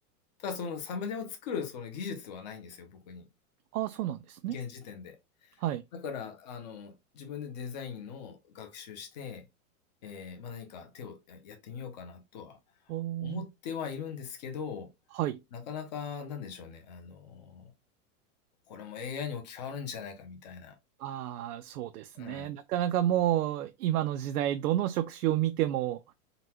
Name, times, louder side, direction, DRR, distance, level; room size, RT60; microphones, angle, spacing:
voice 1, 0.4-3.3 4.5-5.2 5.4-5.6 5.9-9.5 10.0-12.6 13.2-14.9 15.5-17.7 18.7-20.8 22.1-22.5, left 6 dB, 30° left, 0.6 m, -40 dB
voice 2, 3.7-4.6 5.6-5.8 12.9-13.5 15.1-15.4 21.0-26.1, right 12 dB, 85° right, 0.5 m, -30 dB
3.8 x 2.2 x 2.8 m
supercardioid pair, 170°, 43 cm